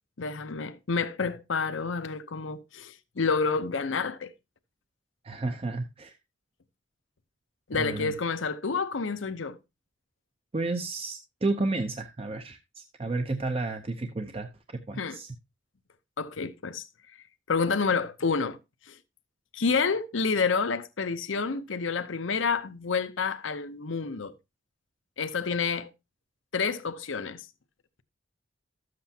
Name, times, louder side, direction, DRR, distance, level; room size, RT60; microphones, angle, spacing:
voice 1, 0.2-4.3 7.7-9.6 15.0-15.2 16.2-16.8 17.5-18.6 18.9-19.0 19.5-24.3 25.2-25.9 26.5-27.4, left 5 dB, 75° left, 0.7 m, -29 dB
voice 2, 5.2-6.1 7.8-8.1 10.5-14.5 14.9-15.3, right 2 dB, 30° right, 0.6 m, -31 dB
13.0 x 7.6 x 2.8 m
head